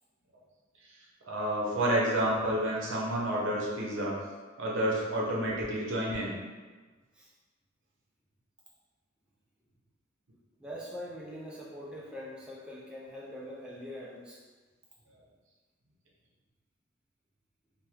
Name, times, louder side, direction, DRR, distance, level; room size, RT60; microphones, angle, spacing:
voice 1, 1.3-4.2 4.6-6.3, right 1 dB, 80° right, -4 dB, 0.7 m, -29 dB
voice 2, 10.6-14.4, equal, 5° right, -5 dB, 0.4 m, -43 dB
2.7 x 2.2 x 3.4 m, 1.3 s
head